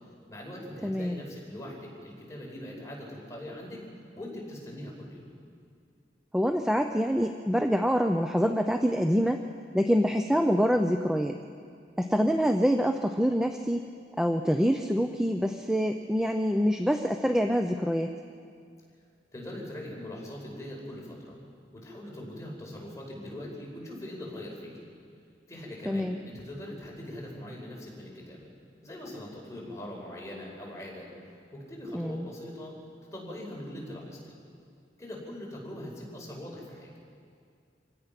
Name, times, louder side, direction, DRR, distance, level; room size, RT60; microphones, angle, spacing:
voice 1, 0.3-3.8 4.2-5.3 19.3-21.3 21.7-24.9 25.5-28.5 28.8-31.1 31.5-32.8 33.1-34.3 35.0-36.9, left 1 dB, 15° left, -2 dB, 5.1 m, -41 dB
voice 2, 0.8-1.1 6.3-9.5 9.7-11.4 12.0-13.8 14.2-18.1 25.9-26.2 31.9-32.3, equal, 5° right, 5 dB, 0.6 m, -26 dB
26.5 x 17.0 x 5.9 m, 2.3 s
head